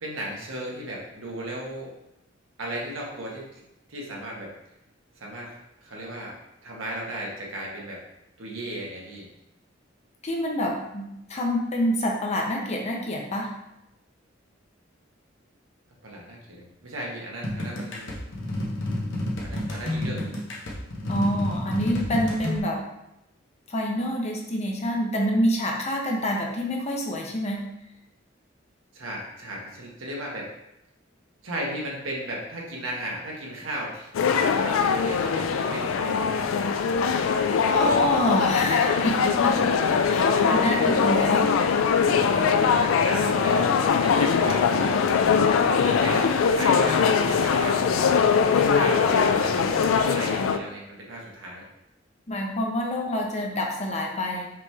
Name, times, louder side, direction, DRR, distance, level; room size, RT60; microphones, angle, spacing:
voice 1, 0.0-1.9 2.6-3.6 3.9-4.5 5.1-8.0 8.4-9.3 16.0-18.2 19.4-20.4 28.9-30.5 31.4-36.4 42.3-45.4 45.8-47.9 48.5-51.6, right 1 dB, 90° right, -3 dB, 1.2 m, -36 dB
voice 2, 10.2-13.5 21.1-22.8 23.7-27.7 37.7-39.7 40.1-41.5 52.3-54.5, equal, 35° left, 0 dB, 0.7 m, -27 dB
sound 1, 17.4-22.6, left 1 dB, 65° left, 0.9 m, -30 dB
sound 2, 34.1-50.6, left 6 dB, 90° left, 0.4 m, -22 dB
5.1 x 3.0 x 3.4 m, 0.87 s
head